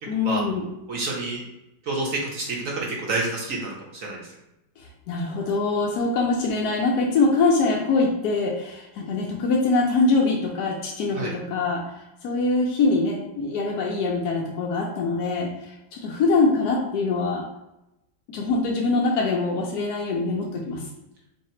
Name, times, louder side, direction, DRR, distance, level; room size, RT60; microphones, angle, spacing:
voice 1, 0.1-0.6 4.8-17.4 18.3-20.9, left 3 dB, 65° left, -2 dB, 1.0 m, -24 dB
voice 2, 0.9-1.4 1.8-4.2 11.1-11.3, right 2 dB, 60° right, -3 dB, 0.9 m, -28 dB
3.3 x 2.8 x 4.2 m, 0.89 s
omnidirectional pair, 2.1 m